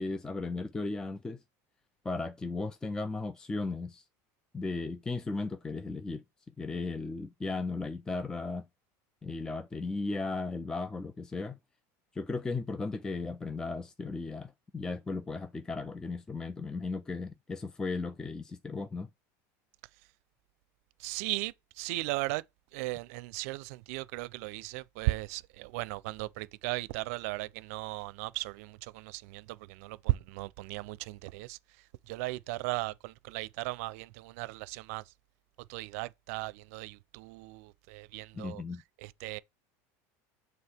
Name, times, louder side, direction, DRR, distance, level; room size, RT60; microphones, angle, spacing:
voice 1, 0.0-1.4 2.0-4.0 4.5-6.2 6.6-8.7 9.2-11.6 12.1-19.1 38.3-38.8, left 3 dB, 10° left, 0.3 m, -36 dB
voice 2, 21.0-22.4 22.7-31.6 32.1-35.1 35.6-38.6 39.0-39.4, right 20 dB, 70° right, 0.5 m, -36 dB
6.9 x 3.3 x 4.3 m
cardioid pair, 155°, 8 cm